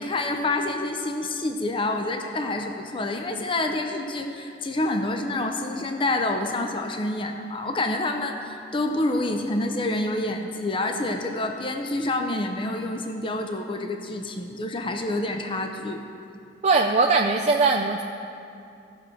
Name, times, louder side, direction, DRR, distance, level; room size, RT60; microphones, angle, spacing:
voice 1, 0.0-16.0, left 2 dB, 30° left, 4 dB, 0.6 m, -27 dB
voice 2, 16.6-18.0, right 3 dB, 40° right, 1 dB, 0.4 m, -20 dB
16.5 x 6.3 x 4.5 m, 2.5 s
head